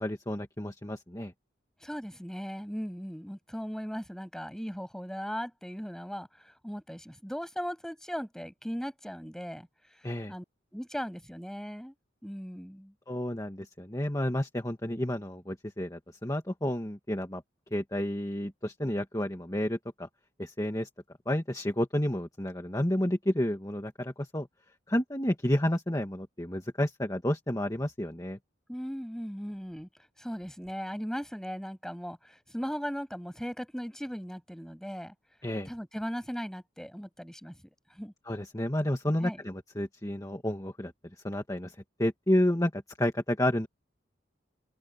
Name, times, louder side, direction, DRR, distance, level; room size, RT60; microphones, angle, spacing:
voice 1, 0.0-1.3 10.0-10.3 13.1-17.4 17.7-20.1 20.4-20.9 21.3-24.5 24.9-28.4 35.4-35.7 38.3-40.9 41.2-43.7, left 1 dB, 20° left, 1.9 m, -30 dB
voice 2, 1.8-9.7 10.0-10.4 10.7-11.9 12.2-12.9 28.7-29.9 30.2-35.1 35.7-37.6 38.0-38.1 39.2-39.4, equal, 5° left, 7.4 m, -38 dB
head